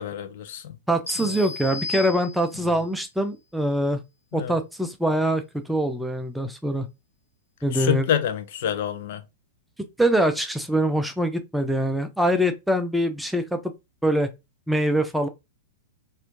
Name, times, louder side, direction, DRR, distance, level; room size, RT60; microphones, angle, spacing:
voice 1, 0.0-0.8 1.2-1.4 2.6-2.8 4.3-4.6 7.7-9.2, left 9 dB, 55° left, 0.6 m, -28 dB
voice 2, 0.9-4.0 4.3-6.9 7.6-8.1 10.0-13.6 14.0-14.3 14.7-15.3, right 1 dB, ahead, 0.4 m, -24 dB
sound 1, 1.1-2.8, left 3 dB, 80° left, 1.0 m, -34 dB
4.2 x 2.5 x 2.6 m
figure-of-eight pair, 100°, 0 cm